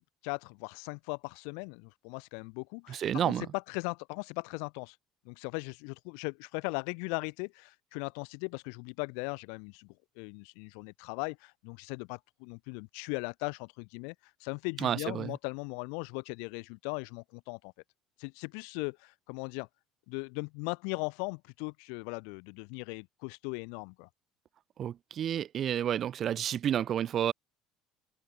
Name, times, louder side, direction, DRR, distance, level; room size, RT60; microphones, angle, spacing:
voice 1, 0.0-5.0 5.2-14.1 14.4-17.7 18.2-19.7 20.1-24.1, left 40 dB or more, 85° left, 0.5 m, -38 dB
voice 2, 2.9-3.5 14.8-15.3 24.8-27.3, right 10 dB, 50° right, 0.7 m, -30 dB
open air
supercardioid pair, 95°, 0 cm